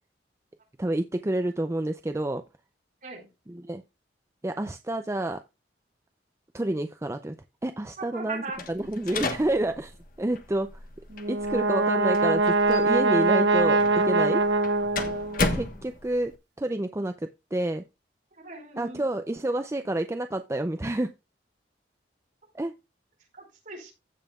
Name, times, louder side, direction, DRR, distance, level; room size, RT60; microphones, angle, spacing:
voice 1, 0.8-2.4 3.5-3.8 4.4-5.4 6.5-7.3 7.6-8.4 8.7-10.7 11.3-14.4 15.4-16.3 16.6-17.8 18.8-21.1 22.5-22.7, right 1 dB, 15° right, 0.4 m, -29 dB
voice 2, 8.0-8.6 18.3-19.1 23.3-23.9, right 3 dB, 45° right, 4.7 m, -39 dB
sound 1, 8.5-16.3, left 3 dB, 50° left, 1.2 m, -35 dB
Brass instrument, 11.2-15.6, right 3 dB, 75° right, 1.1 m, -23 dB
16.0 x 5.6 x 2.3 m
head